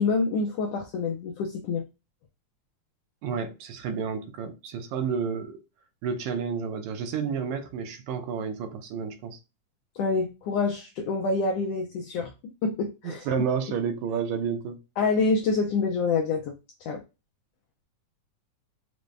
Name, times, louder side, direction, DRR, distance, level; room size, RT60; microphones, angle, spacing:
voice 1, 0.0-1.8 9.9-12.3 12.6-13.3 15.0-16.5 16.8-17.0, left 4 dB, 85° left, 1.4 m, -26 dB
voice 2, 3.2-5.6 6.0-9.4 13.0-14.8, right 6 dB, 80° right, 1.9 m, -30 dB
5.1 x 2.1 x 3.2 m
omnidirectional pair, 3.4 m